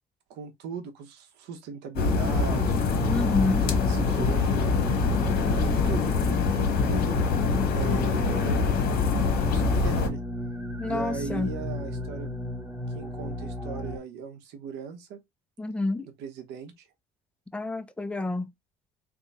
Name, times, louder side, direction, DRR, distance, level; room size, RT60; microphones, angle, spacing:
voice 1, 0.3-3.0 3.6-4.9 5.5-7.2 7.7-8.8 9.5-10.2 10.9-12.3 12.9-15.2 16.2-16.9, right 6 dB, 85° right, 1.0 m, -38 dB
sound 1, 2.0-10.1, left 4 dB, 65° left, 1.3 m, -24 dB
sound 2, 2.5-14.0, left 1 dB, 10° right, 1.3 m, -35 dB
voice 2, 3.1-3.7 10.8-11.5 15.6-16.1 17.5-18.5, left 3 dB, 5° left, 0.5 m, -28 dB
3.6 x 2.3 x 4.1 m
cardioid pair, 110°, 17 cm